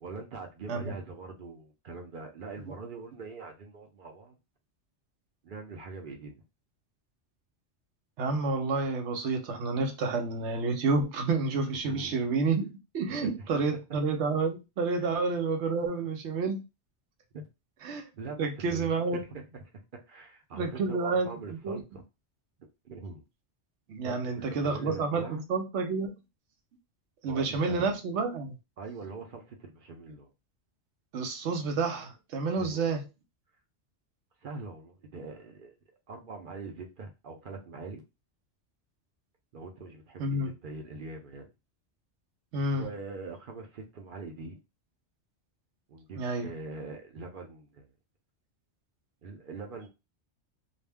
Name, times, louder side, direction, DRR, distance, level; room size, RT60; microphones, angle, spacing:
voice 1, 0.0-4.4 5.4-6.4 11.8-12.3 13.1-13.6 15.0-15.1 17.3-17.5 18.2-19.8 20.1-22.0 22.8-23.2 24.0-25.4 27.3-27.9 28.8-30.3 32.5-32.9 34.4-35.8 36.1-38.0 39.5-41.5 42.7-44.6 45.9-47.9 49.2-49.9, right 3 dB, 55° right, 3 dB, 0.7 m, -43 dB
voice 2, 8.2-16.6 17.8-18.1 18.4-19.2 20.5-21.8 23.9-25.2 25.5-26.1 27.2-28.5 31.1-33.0 40.2-40.5 42.5-42.9 46.2-46.5, right 4 dB, 85° right, 4 dB, 1.0 m, -29 dB
2.5 x 2.1 x 3.4 m, 0.26 s
omnidirectional pair, 1.2 m